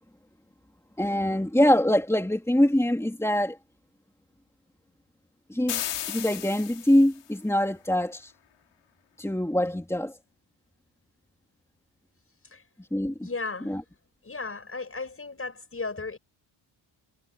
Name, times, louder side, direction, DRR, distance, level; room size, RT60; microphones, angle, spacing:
voice 1, 1.0-3.6 5.5-8.3 9.2-10.1 12.9-13.3 13.6-13.8, left 1 dB, 5° left, 3.2 m, -24 dB
sound 1, 5.7-7.2, left 11 dB, 85° left, 5.7 m, -34 dB
voice 2, 13.2-13.8 14.2-16.2, left 3 dB, 25° left, 6.3 m, -35 dB
cardioid pair, 105°, 50 cm